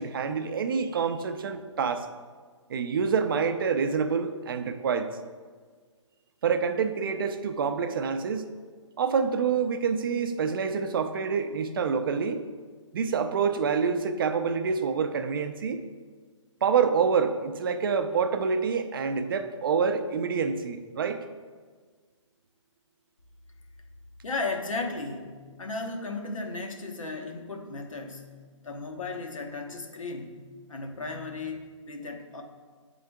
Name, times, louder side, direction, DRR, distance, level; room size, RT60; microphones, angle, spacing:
voice 1, 0.0-2.1 2.7-5.2 6.4-8.5 9.0-12.4 12.9-15.8 16.6-21.2, right 6 dB, 45° right, 8 dB, 0.4 m, -27 dB
voice 2, 24.2-28.3 28.6-30.4 30.7-32.4, left 3 dB, 85° left, 3 dB, 1.0 m, -35 dB
8.6 x 3.8 x 3.5 m, 1.5 s
hypercardioid pair, 150°, 17 cm